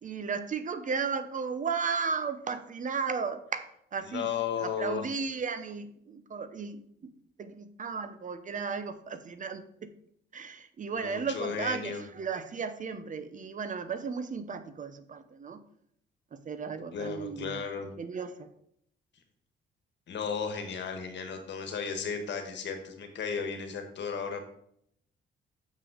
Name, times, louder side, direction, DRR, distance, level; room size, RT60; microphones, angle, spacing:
voice 1, 0.0-4.3 4.5-7.1 7.4-9.9 10.3-15.6 16.3-17.6 18.0-18.5, right 5 dB, 40° right, 11 dB, 0.8 m, -35 dB
voice 2, 4.0-5.0 10.9-12.0 16.9-17.9 20.1-24.4, left 6 dB, 65° left, 5 dB, 1.6 m, -34 dB
6.8 x 5.9 x 5.1 m, 0.70 s
cardioid pair, 90°, 20 cm